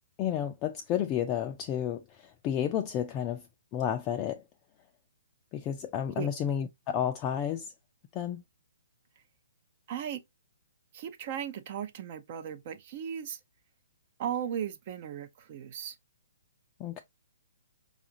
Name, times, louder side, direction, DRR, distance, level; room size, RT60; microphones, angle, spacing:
voice 1, 0.2-3.4 3.7-4.4 5.5-7.7 8.1-8.4 16.8-17.0, left 9 dB, 25° left, 0.4 m, -31 dB
voice 2, 9.9-10.2 10.9-13.4 14.2-16.0, right 9 dB, 45° right, 0.5 m, -36 dB
4.9 x 2.4 x 2.8 m
hypercardioid pair, 140°, 0 cm